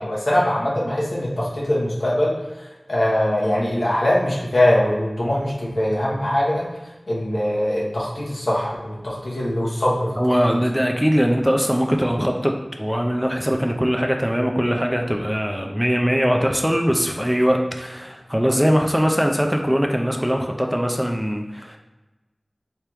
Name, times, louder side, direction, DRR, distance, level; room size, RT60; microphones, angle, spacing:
voice 1, 0.0-2.3 2.9-6.7 7.1-10.1 10.5-10.6, left 1 dB, 80° left, -5 dB, 1.0 m, -22 dB
voice 2, 10.2-21.8, equal, 5° right, 2 dB, 0.4 m, -21 dB
3.5 x 3.4 x 2.9 m, 1.1 s
wide cardioid pair, 40°, 0 cm